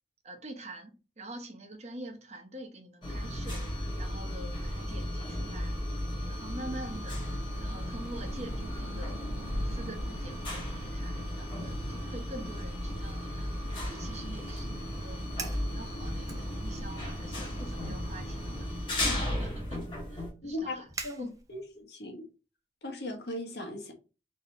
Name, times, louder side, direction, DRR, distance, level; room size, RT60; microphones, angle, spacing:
voice 1, 0.2-3.6 4.0-5.8 6.3-7.2 7.6-9.2 9.6-15.3 15.6-18.7 19.1-20.9 21.2-21.4, right 1 dB, 40° right, 1.0 m, -45 dB
sound 1, 3.0-20.3, left 1 dB, 25° left, 1.5 m, -35 dB
sound 2, 6.9-18.6, right 1 dB, 85° right, 1.1 m, -49 dB
Fire, 15.2-15.7 16.2-17.0 17.4-17.7 18.4-21.8, right 3 dB, 20° right, 0.6 m, -45 dB
voice 2, 20.4-22.3 22.8-23.9, left 1 dB, 65° left, 1.3 m, -38 dB
4.1 x 3.1 x 4.0 m
head